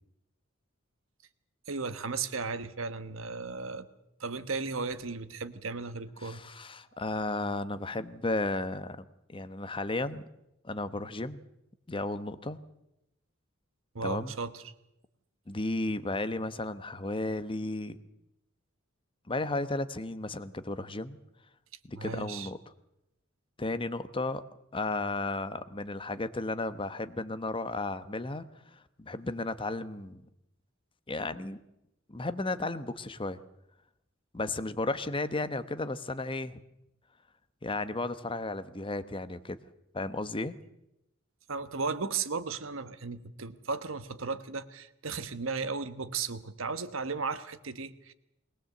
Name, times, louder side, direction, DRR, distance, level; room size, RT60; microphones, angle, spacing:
voice 1, 1.7-3.9 4.2-6.4 13.9-14.7 21.9-22.5 41.5-48.1, right 4 dB, 75° right, 12 dB, 1.2 m, -35 dB
voice 2, 6.2-10.2 10.6-11.4 11.9-12.6 14.0-14.3 15.5-18.0 19.3-21.2 21.9-22.6 23.6-24.4 24.7-28.4 28.7-30.2 31.1-31.6 32.1-33.4 34.3-36.6 37.6-39.6 39.9-40.5, left 2 dB, 25° left, 12 dB, 0.9 m, -34 dB
21.0 x 19.0 x 7.8 m, 0.86 s
head